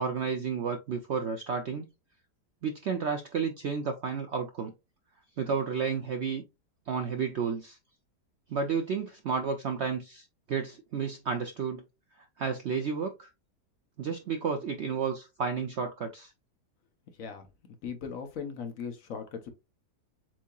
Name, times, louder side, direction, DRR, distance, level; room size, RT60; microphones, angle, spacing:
voice 1, 0.0-1.9 2.6-4.7 5.4-6.4 6.9-7.8 8.5-11.8 12.4-13.3 14.0-16.3, right 6 dB, 70° right, 0.6 m, -31 dB
voice 2, 17.2-19.5, left 6 dB, 60° left, 1.1 m, -39 dB
7.4 x 2.8 x 2.3 m
omnidirectional pair, 1.8 m